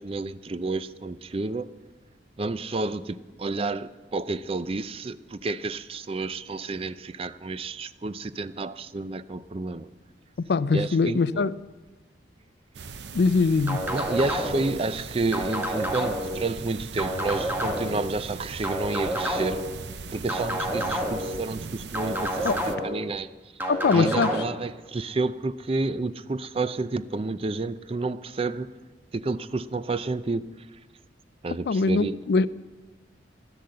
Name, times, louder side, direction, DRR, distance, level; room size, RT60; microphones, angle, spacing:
voice 1, 0.0-1.7 2.4-9.9 10.7-11.5 13.9-19.6 20.1-23.3 23.9-28.7 29.1-30.4 31.4-32.2, right 3 dB, 30° right, 0.4 m, -30 dB
voice 2, 10.5-11.6 13.1-13.8 22.4-22.6 23.7-24.4 31.7-32.5, left 4 dB, 65° left, 0.4 m, -22 dB
sound 1, 12.7-22.8, right 4 dB, 70° right, 0.7 m, -39 dB
sound 2, 13.7-14.7 15.3-16.4 17.0-18.0 18.6-19.7 20.3-21.3 21.9-23.0 23.6-24.4, equal, 10° right, 1.6 m, -29 dB
12.5 x 10.5 x 7.7 m
head